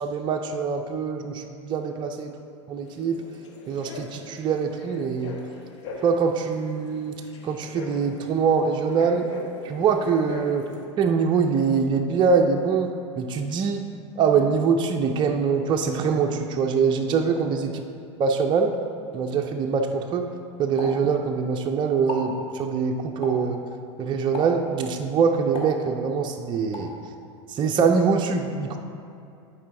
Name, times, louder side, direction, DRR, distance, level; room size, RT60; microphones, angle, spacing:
voice 1, 0.0-2.3 2.7-3.2 3.7-5.4 6.0-7.2 7.4-9.2 9.6-10.7 11.0-13.9 14.2-17.7 18.2-18.8 19.1-20.3 20.6-23.6 24.0-26.9 27.5-28.8, right 5 dB, 30° right, 3 dB, 0.5 m, -23 dB
sound 1, 2.9-10.8, left 3 dB, 80° left, 1.1 m, -41 dB
Explosion, 20.8-21.6 21.9-22.4 23.2-23.6 24.3-24.7 25.5-26.2 26.7-27.0, left 1 dB, 35° left, 1.7 m, -35 dB
11.0 x 4.8 x 3.7 m, 2.5 s
hypercardioid pair, 100°, 16 cm